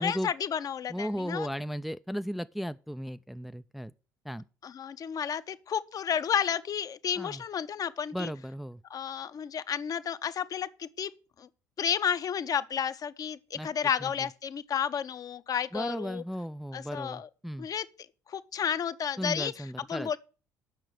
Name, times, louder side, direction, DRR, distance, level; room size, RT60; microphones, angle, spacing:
voice 1, 0.0-1.5 4.6-8.3 8.9-11.1 11.4-11.5 11.8-16.2 16.7-17.3 17.6-17.9 18.3-20.2, left 8 dB, 45° left, 0.7 m, -32 dB
voice 2, 0.9-3.9 4.3-4.4 7.2-7.4 8.1-8.8 13.5-13.7 14.0-14.1 15.7-17.7 19.2-20.1, equal, ahead, 0.4 m, -35 dB
8.0 x 6.2 x 7.9 m
hypercardioid pair, 60°, 9 cm